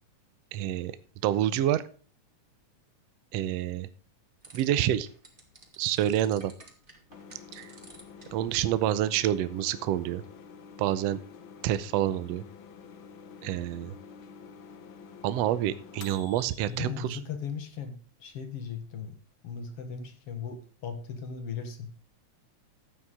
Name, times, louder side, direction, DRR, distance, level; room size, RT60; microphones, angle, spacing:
voice 1, 0.5-0.9 1.2-1.8 3.3-3.9 4.5-5.1 5.8-6.5 7.5-7.7 8.3-10.2 10.8-11.2 11.6-12.4 13.4-13.9 15.2-17.2, right 12 dB, 75° right, 14 dB, 1.6 m, -27 dB
sound 1, 4.4-10.0, right 1 dB, 20° right, 2.1 m, -54 dB
sound 2, 7.1-16.8, left 6 dB, 75° left, 1.1 m, -49 dB
voice 2, 16.6-19.2 19.4-21.9, left 6 dB, 55° left, 6 dB, 2.2 m, -38 dB
12.5 x 8.6 x 3.7 m, 0.40 s
omnidirectional pair, 3.6 m